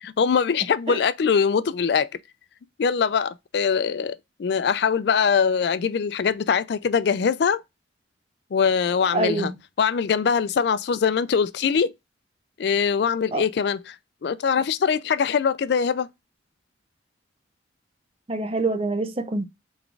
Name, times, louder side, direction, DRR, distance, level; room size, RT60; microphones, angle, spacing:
voice 1, 0.0-2.1 2.8-7.6 8.5-9.5 9.8-11.9 12.6-13.9 14.2-16.1, left 6 dB, 60° left, 0.3 m, -22 dB
voice 2, 9.1-9.6 13.3-13.4 18.3-19.5, right 2 dB, 30° right, 0.5 m, -25 dB
4.0 x 3.4 x 3.2 m
head